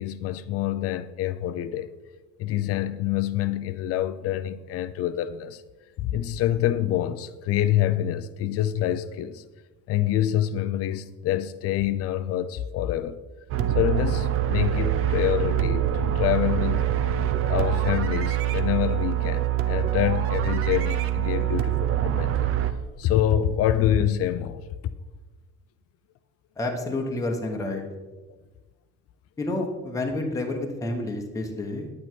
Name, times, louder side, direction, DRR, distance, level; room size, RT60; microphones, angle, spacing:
voice 1, 0.0-1.9 2.4-5.6 6.0-9.4 9.9-13.2 13.7-16.8 17.5-22.5 23.0-24.7, left 11 dB, 55° left, 0.5 m, -26 dB
sound 1, 13.5-22.7, right 11 dB, 50° right, 0.6 m, -24 dB
voice 2, 26.6-27.8 29.4-31.9, left 2 dB, 10° left, 1.1 m, -29 dB
9.7 x 8.7 x 4.5 m
cardioid pair, 165°, 29 cm